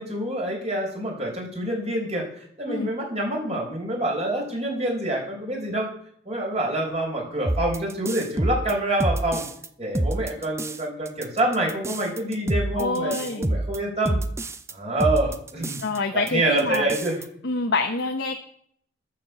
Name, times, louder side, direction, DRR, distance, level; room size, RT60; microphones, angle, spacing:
voice 1, 0.0-5.9 6.2-9.4 9.8-14.2 14.7-15.8 16.1-17.2, right 1 dB, 35° right, 0 dB, 4.7 m, -26 dB
sound 1, 7.5-9.7 10.0-10.8 11.1-14.7 15.0-16.0 16.3-16.4 16.6-17.3, right 1 dB, 15° right, 0.5 m, -27 dB
voice 2, 12.8-13.4 15.8-16.9 17.4-18.4, left 3 dB, 80° left, 3 dB, 1.1 m, -26 dB
13.5 x 6.8 x 6.9 m, 0.65 s
head